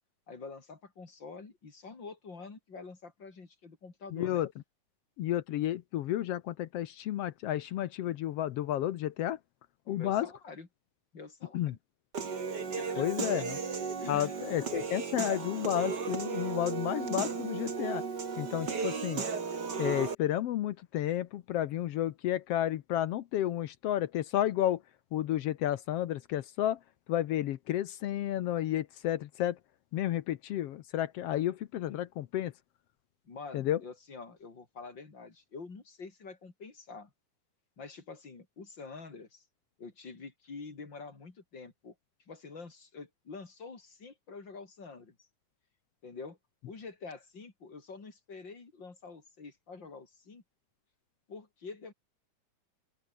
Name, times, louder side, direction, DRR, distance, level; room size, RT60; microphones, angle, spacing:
voice 1, 0.3-4.4 9.8-10.7 11.1-11.8 12.6-13.5 14.0-14.4 33.3-37.1 37.8-39.4 39.8-41.9 42.3-45.3 46.0-46.4 46.7-50.4 51.3-51.9, left 4 dB, 35° left, 4.2 m, -47 dB
voice 2, 4.1-4.5 5.2-9.4 9.9-10.3 11.5-11.8 13.0-13.6 14.1-18.0 18.4-19.2 19.8-24.8 25.1-26.8 27.1-29.6 29.9-32.5 33.5-33.8, left 12 dB, 70° left, 1.5 m, -31 dB
Human voice / Piano, 12.1-20.2, right 5 dB, 35° right, 2.7 m, -35 dB
open air
omnidirectional pair, 3.6 m